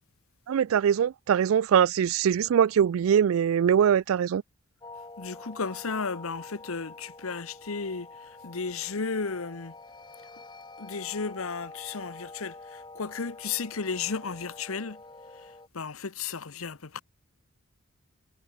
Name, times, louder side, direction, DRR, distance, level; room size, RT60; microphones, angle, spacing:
voice 1, 0.5-4.4, right 8 dB, 70° right, 0.3 m, -22 dB
sound 1, 4.8-15.7, left 3 dB, 20° left, 2.7 m, -47 dB
voice 2, 5.2-9.7 10.8-15.0 15.3-17.0, left 5 dB, 75° left, 1.0 m, -34 dB
head